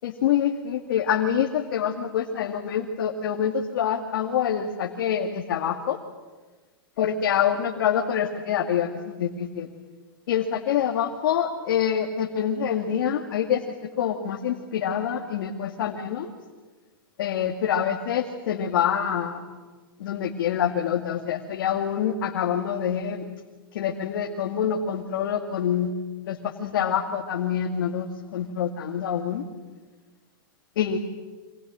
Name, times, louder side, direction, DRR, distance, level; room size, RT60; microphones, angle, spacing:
voice 1, 0.0-6.0 7.0-9.7 10.3-16.3 17.2-19.5 20.0-23.2 23.7-25.9 26.2-29.5 30.8-31.0, left 8 dB, 70° left, 1 dB, 2.3 m, -26 dB
28.0 x 26.5 x 7.8 m, 1.3 s
hypercardioid pair, 125°, 12 cm